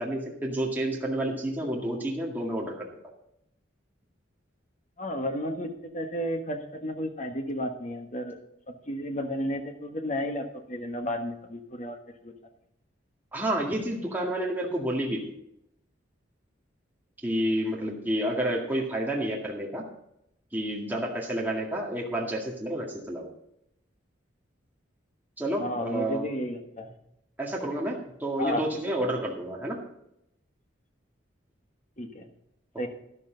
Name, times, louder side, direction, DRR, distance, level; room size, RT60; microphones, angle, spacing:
voice 1, 0.0-2.9 13.3-15.3 17.2-19.8 20.5-23.3 25.4-26.3 27.4-29.8, right 1 dB, 10° right, -3 dB, 2.0 m, -30 dB
voice 2, 5.0-8.4 8.9-12.0 12.2-12.3 25.6-26.9 28.4-28.7 32.0-32.2 32.8-32.9, equal, 40° left, 5 dB, 1.4 m, -32 dB
12.5 x 11.5 x 3.9 m, 0.79 s
head